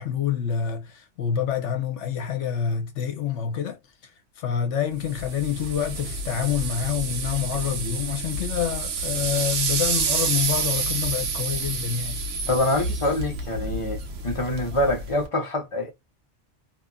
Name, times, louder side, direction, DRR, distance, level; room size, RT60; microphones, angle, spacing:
voice 1, 0.0-4.1 4.4-12.2, left 9 dB, 75° left, 1.1 m, -27 dB
sound 1, 5.0-15.3, right 4 dB, 85° right, 1.1 m, -29 dB
voice 2, 12.5-14.0 14.2-15.9, left 1 dB, 30° left, 0.8 m, -25 dB
2.8 x 2.5 x 2.2 m
omnidirectional pair, 1.2 m